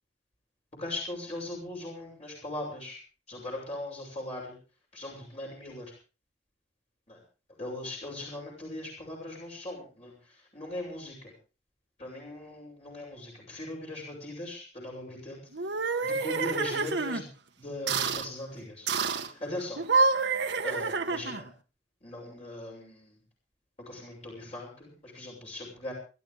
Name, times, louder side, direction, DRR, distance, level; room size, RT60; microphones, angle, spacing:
voice 1, 0.8-3.0 3.3-4.6 4.9-5.9 7.1-7.2 7.6-11.3 12.0-15.5 16.0-17.3 17.6-18.9 19.3-19.9 20.6-21.5 22.0-23.2 23.8-25.9, left 1 dB, 35° left, -3 dB, 6.7 m, -39 dB
sound 1, 15.5-17.2 17.9-18.3 18.9-19.3 19.8-21.5, right 4 dB, 75° right, 1.7 m, -28 dB
29.0 x 12.0 x 3.6 m, 0.35 s
head